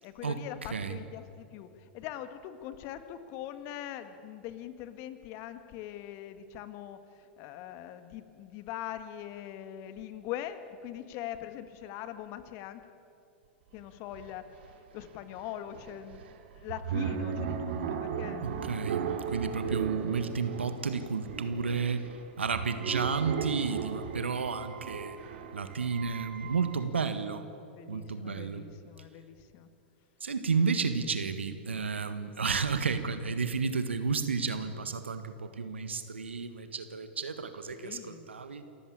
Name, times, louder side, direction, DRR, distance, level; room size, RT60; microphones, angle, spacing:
voice 1, 0.0-1.7 1.9-7.0 7.4-12.8 13.7-14.4 14.9-16.2 16.6-18.6 19.4-19.8 22.7-22.9 27.7-29.7 37.7-38.2, left 11 dB, 50° left, 10 dB, 1.7 m, -42 dB
sound 1, 13.8-13.9 14.1-26.8, right 7 dB, 70° right, 2.4 m, -37 dB
voice 2, 18.4-22.1 22.4-25.2 25.5-27.4 27.9-28.6 30.2-38.6, right 5 dB, 85° right, 10 dB, 1.6 m, -32 dB
27.5 x 14.5 x 8.7 m, 2.7 s
hypercardioid pair, 100°, 6 cm